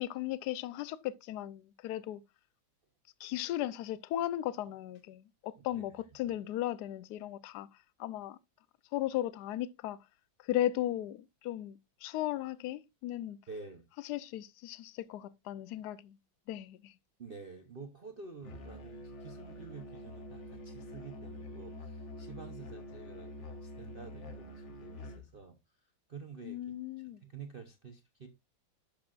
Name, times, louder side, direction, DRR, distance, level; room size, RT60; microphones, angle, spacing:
voice 1, 0.0-2.2 3.2-7.7 8.0-8.4 8.9-10.0 10.4-13.4 14.0-16.2 16.5-16.9 26.4-27.2, left 13 dB, 70° left, 1.1 m, -36 dB
voice 2, 13.5-13.8 17.2-25.6 26.1-28.3, right 5 dB, 45° right, 0.7 m, -49 dB
Musical instrument, 18.4-25.3, left 1 dB, 40° left, 1.4 m, -46 dB
11.5 x 6.9 x 2.4 m
omnidirectional pair, 2.1 m